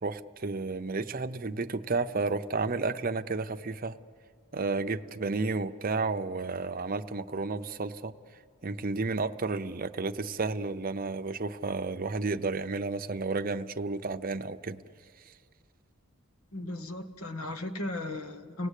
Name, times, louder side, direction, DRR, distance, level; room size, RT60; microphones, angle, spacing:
voice 1, 0.0-4.0 4.5-8.1 8.6-14.8, right 3 dB, 40° right, 8 dB, 0.7 m, -32 dB
voice 2, 16.5-18.7, left 2 dB, 80° left, 8 dB, 1.4 m, -36 dB
29.5 x 18.0 x 8.3 m, 2.1 s
head